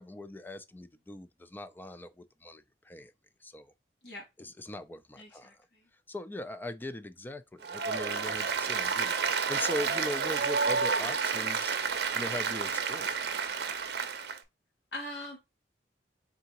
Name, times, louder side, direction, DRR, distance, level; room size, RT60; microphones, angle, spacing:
voice 1, 0.0-3.1 3.4-3.7 4.4-5.5 6.1-11.8 12.2-13.5, left 1 dB, 10° left, 0.3 m, -40 dB
voice 2, 5.2-5.9 14.9-15.4, left 1 dB, 70° left, 1.9 m, -42 dB
Applause, 7.6-14.4, right 5 dB, 65° right, 0.6 m, -30 dB
3.8 x 3.5 x 2.8 m
head